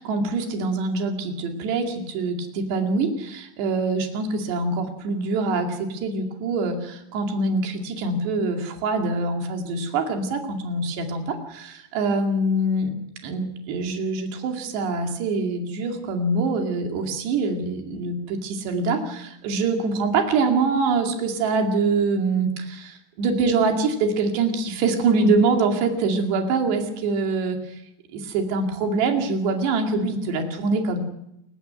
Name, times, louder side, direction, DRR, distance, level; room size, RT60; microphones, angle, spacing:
voice 1, 0.0-13.0 13.2-27.6 28.1-31.0, right 3 dB, 65° right, 4 dB, 4.3 m, -24 dB
28.0 x 15.0 x 7.9 m, 0.83 s
omnidirectional pair, 5.3 m